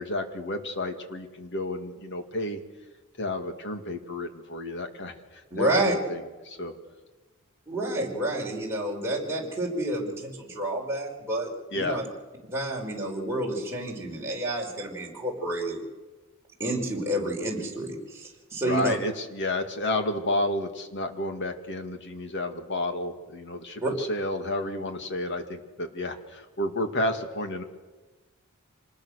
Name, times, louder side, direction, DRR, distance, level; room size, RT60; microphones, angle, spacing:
voice 1, 0.0-2.6 3.2-6.7 11.7-12.0 18.6-27.6, left 1 dB, 55° left, 7 dB, 2.5 m, -31 dB
voice 2, 5.5-6.0 7.7-12.1 12.5-15.8 16.6-19.0 23.8-23.9, right 1 dB, 10° right, -3 dB, 5.4 m, -29 dB
26.0 x 20.5 x 6.6 m, 1.2 s
head